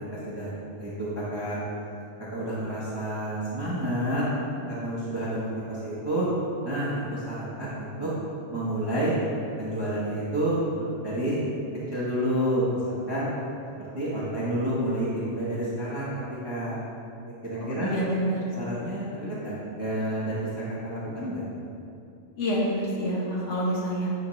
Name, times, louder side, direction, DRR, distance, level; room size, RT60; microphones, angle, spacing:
voice 1, 0.8-1.6 2.3-4.2 4.7-6.3 6.6-8.1 8.5-9.1 9.6-11.4 11.9-13.3 13.8-16.1 16.4-16.8 17.4-17.9 18.6-20.5 20.8-21.4, right 1 dB, 25° right, -10 dB, 0.8 m, -29 dB
voice 2, 17.5-18.4 22.4-24.1, equal, 70° left, -5 dB, 1.2 m, -27 dB
8.8 x 3.6 x 3.0 m, 2.7 s
omnidirectional pair, 1.3 m